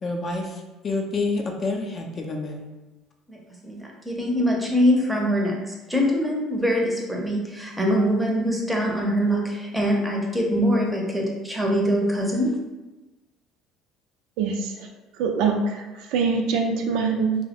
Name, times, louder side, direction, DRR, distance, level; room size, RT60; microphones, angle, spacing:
voice 1, 0.0-2.7, left 3 dB, 40° left, 2 dB, 0.4 m, -28 dB
voice 2, 3.3-12.6, equal, 5° right, -1 dB, 0.6 m, -23 dB
voice 3, 14.4-14.9 15.2-17.4, right 5 dB, 75° right, 3 dB, 0.3 m, -24 dB
2.6 x 2.0 x 2.8 m, 1.1 s
supercardioid pair, 90°, 0 cm